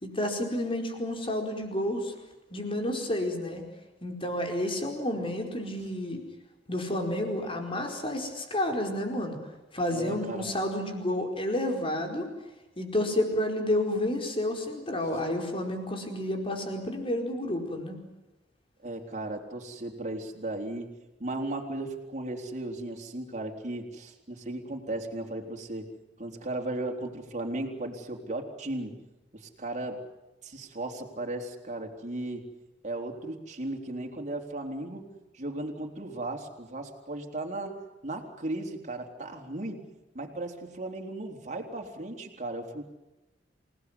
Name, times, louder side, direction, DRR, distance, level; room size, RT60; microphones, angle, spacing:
voice 1, 0.0-2.1 2.5-3.6 4.0-6.2 6.7-9.4 9.7-12.3 12.8-18.0, left 1 dB, 30° left, 4 dB, 4.8 m, -30 dB
voice 2, 9.9-10.5 18.8-20.9 21.2-25.9 26.2-29.0 29.3-30.0 30.4-32.4 32.8-39.8 40.1-42.9, right 2 dB, 40° right, 2 dB, 3.9 m, -36 dB
28.5 x 19.0 x 9.8 m, 1.0 s
head